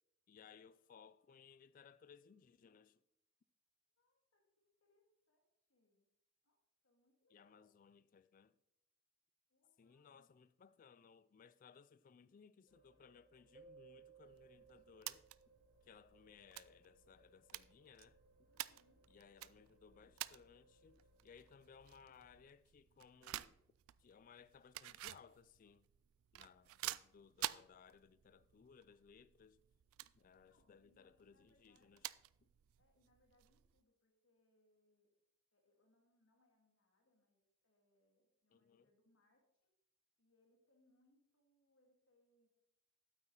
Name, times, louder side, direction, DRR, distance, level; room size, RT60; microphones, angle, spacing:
voice 1, 0.3-3.0 7.3-8.6 9.8-15.3 15.8-18.5 19.1-23.6 24.0-25.9 26.3-29.6 30.1-32.1 32.4-32.5 38.5-38.9, left 6 dB, 40° left, 0.3 m, -63 dB
voice 2, 3.9-6.1 6.4-7.7 9.5-10.3 18.5-19.1 30.5-32.2 32.8-35.1 35.5-39.7 40.2-42.5, left 1 dB, 70° left, 2.1 m, -78 dB
sound 1, 12.7-22.4, right 1 dB, 60° right, 2.9 m, -72 dB
Keyboard (musical), 13.5-16.3, right 6 dB, 30° right, 0.7 m, -63 dB
sound 2, 14.3-33.8, right 15 dB, 80° right, 0.3 m, -52 dB
8.8 x 8.2 x 3.8 m
head